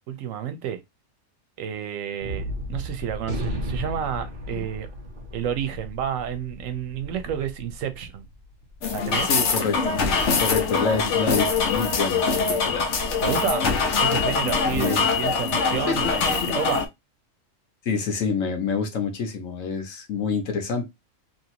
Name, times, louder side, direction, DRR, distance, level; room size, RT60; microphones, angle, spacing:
voice 1, 0.1-0.8 1.6-4.9 5.3-8.3 8.9-9.3 13.2-13.7 14.0-16.8, right 9 dB, 80° right, 1.0 m, -30 dB
Gunshot gunfire, 2.2-8.8, equal, 45° right, 1.0 m, -34 dB
sound 1, 8.8-16.9, left 4 dB, 65° left, 1.0 m, -23 dB
voice 2, 9.2-10.0 10.4-12.9 14.7-15.3 17.8-20.9, left 5 dB, 85° left, 1.2 m, -27 dB
3.0 x 2.6 x 2.8 m
omnidirectional pair, 1.3 m